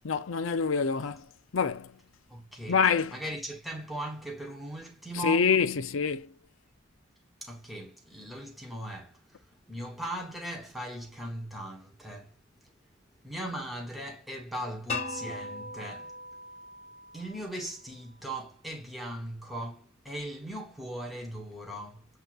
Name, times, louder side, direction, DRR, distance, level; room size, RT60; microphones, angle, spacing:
voice 1, 0.0-1.9 2.7-3.2 5.1-6.3, left 6 dB, 80° left, 0.6 m, -26 dB
voice 2, 2.3-2.8 3.1-5.5 7.4-9.4 9.7-12.4 13.2-16.1 17.1-22.1, right 1 dB, ahead, 1.0 m, -39 dB
sound 1, 14.9-17.8, left 2 dB, 30° left, 1.2 m, -39 dB
7.9 x 2.8 x 2.4 m
head